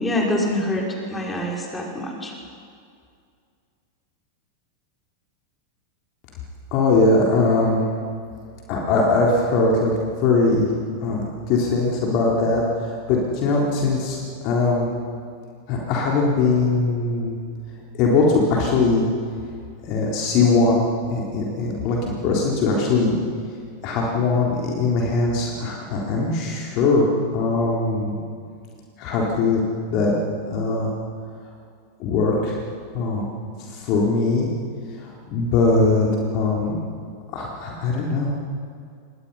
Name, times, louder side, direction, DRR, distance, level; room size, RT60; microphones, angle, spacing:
voice 1, 0.0-2.3, left 1 dB, 15° left, -1 dB, 5.0 m, -25 dB
voice 2, 6.7-7.8 8.7-9.9 10.2-10.7 11.0-14.2 14.4-14.9 15.7-17.4 18.0-19.1 19.8-20.8 21.1-23.1 23.8-28.2 29.0-29.6 29.9-30.1 30.5-30.9 32.0-32.6 32.9-33.3 33.7-34.5 35.0-36.1 36.3-36.8 37.3-38.3, left 3 dB, 40° left, -2 dB, 3.7 m, -21 dB
28.0 x 21.5 x 5.6 m, 2.2 s
figure-of-eight pair, 90°, 0 cm